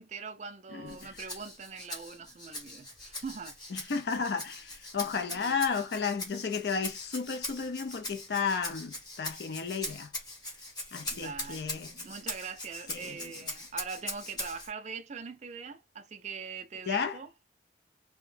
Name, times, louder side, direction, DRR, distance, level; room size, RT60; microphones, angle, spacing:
voice 1, 0.0-3.9 5.1-5.7 11.1-17.3, right 5 dB, 40° right, 0.4 m, -42 dB
voice 2, 0.7-1.2 3.7-10.1 10.9-12.1 12.9-13.3 16.9-17.2, left 5 dB, 60° left, 0.4 m, -33 dB
Rattle (instrument), 0.9-14.7, left 2 dB, 25° left, 0.9 m, -41 dB
2.2 x 2.1 x 3.2 m
head